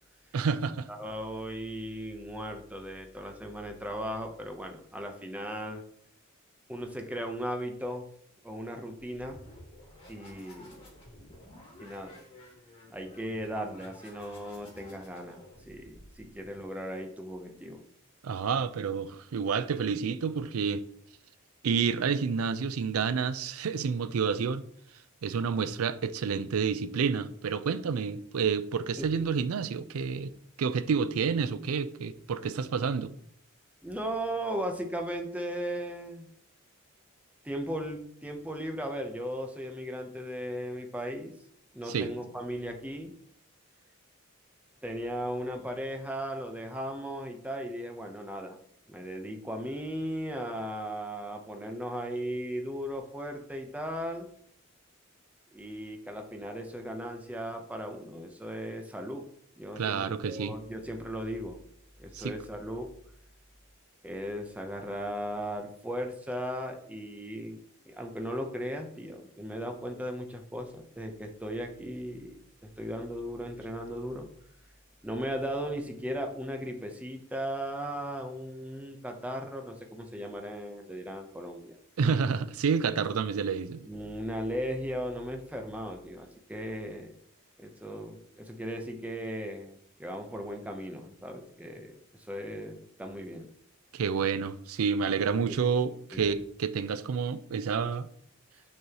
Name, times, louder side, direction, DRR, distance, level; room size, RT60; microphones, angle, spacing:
voice 1, 0.3-0.9 18.2-20.8 21.6-24.6 25.2-30.3 30.6-33.1 41.9-42.1 59.8-60.5 62.1-62.3 82.0-83.9 93.9-98.1, right 6 dB, 85° right, 0.4 m, -29 dB
voice 2, 0.9-5.8 6.7-8.0 8.4-9.4 10.1-10.8 11.8-12.2 12.9-15.4 15.7-17.8 29.0-29.1 33.8-36.3 37.4-41.3 41.7-43.1 44.8-48.6 48.9-54.3 55.5-59.2 59.6-61.6 62.0-62.9 64.0-67.6 67.8-72.4 72.8-74.3 75.0-81.8 83.8-87.2 87.6-91.9 92.3-93.5 95.3-95.6 96.1-96.3, equal, 5° right, 0.7 m, -37 dB
sound 1, 9.1-16.5, left 1 dB, 25° left, 2.2 m, -52 dB
6.5 x 5.4 x 2.9 m
head